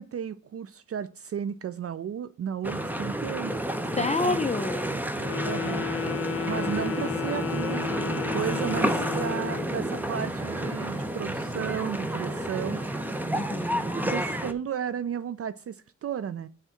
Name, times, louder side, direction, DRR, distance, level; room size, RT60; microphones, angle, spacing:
voice 1, 0.0-3.5 4.0-4.4 4.9-5.9 6.5-12.8 14.0-16.5, right 8 dB, 50° right, 0.4 m, -34 dB
sound 1, 2.6-14.5, right 1 dB, 5° right, 0.8 m, -30 dB
voice 2, 3.9-4.9 6.6-7.1 13.3-13.9, left 4 dB, 25° left, 0.5 m, -29 dB
Wind instrument woodwind instrument, 5.2-9.8, left 8 dB, 45° left, 0.8 m, -33 dB
sound 2, 6.0-13.3, right 6 dB, 80° right, 1.0 m, -47 dB
8.2 x 3.7 x 5.6 m
wide cardioid pair, 105°, 30 cm